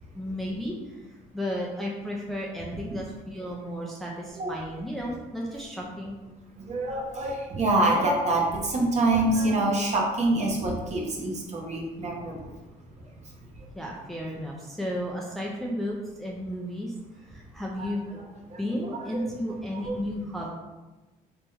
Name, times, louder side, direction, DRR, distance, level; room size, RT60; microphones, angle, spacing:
voice 1, 0.1-6.2 13.7-16.9 17.3-18.2 18.6-20.5, equal, ahead, -3 dB, 0.5 m, -33 dB
voice 2, 6.6-12.4 19.1-19.2 19.7-20.0, right 2 dB, 40° right, -1 dB, 1.0 m, -25 dB
3.2 x 3.0 x 3.5 m, 1.1 s
cardioid pair, 110°, 17 cm